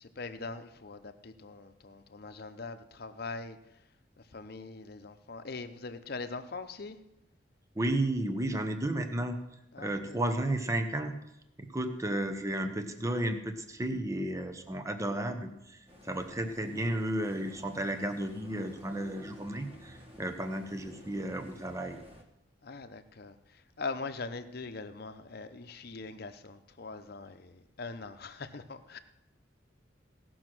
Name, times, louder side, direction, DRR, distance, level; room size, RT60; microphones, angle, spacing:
voice 1, 0.0-3.6 4.2-7.0 9.7-10.2 16.1-16.2 22.6-29.0, left 3 dB, 55° left, 8 dB, 0.8 m, -42 dB
voice 2, 7.7-9.4 9.8-11.1 11.6-22.0, right 1 dB, 15° right, 7 dB, 0.9 m, -33 dB
sound 1, 15.9-22.2, equal, 35° right, 1.6 m, -53 dB
17.0 x 6.2 x 6.1 m, 0.87 s
head